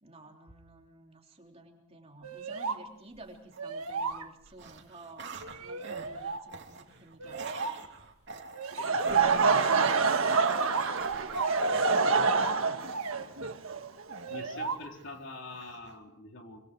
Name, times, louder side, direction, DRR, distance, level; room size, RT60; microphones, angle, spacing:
voice 1, 0.0-5.3 5.6-7.7 8.8-13.3, right 2 dB, 25° right, 1 dB, 3.4 m, -51 dB
sound 1, 2.2-2.8 3.1-3.2 3.6-4.6 5.4-6.4 7.2-7.8 8.5-9.8 10.5-11.8 12.1-12.6 12.9-13.3 14.2-14.8, right 4 dB, 85° right, 1.7 m, -36 dB
sound 2, 3.5-4.2 4.5-13.2 14.1-15.2 15.5-16.0, right 5 dB, 50° right, 3.2 m, -45 dB
Laughter / Crowd, 8.7-14.7, right 4 dB, 70° right, 1.5 m, -26 dB
voice 2, 14.3-16.6, left 2 dB, 55° left, 2 dB, 4.1 m, -44 dB
27.0 x 26.5 x 4.7 m, 0.79 s
head